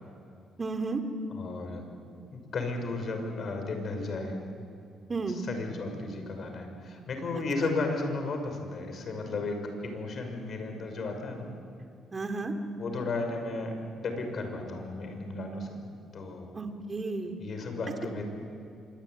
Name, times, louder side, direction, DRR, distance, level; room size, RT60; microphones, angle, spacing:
voice 1, 0.6-1.0 5.1-5.4 7.6-7.7 12.1-12.5 16.5-17.4, right 3 dB, 30° right, 5 dB, 2.9 m, -33 dB
voice 2, 1.3-1.9 2.3-4.4 5.3-11.5 12.8-15.8 16.1-16.5 17.4-18.2, left 3 dB, 55° left, 5 dB, 6.3 m, -34 dB
26.0 x 22.5 x 9.5 m, 2.4 s
cardioid pair, 90°, 0 cm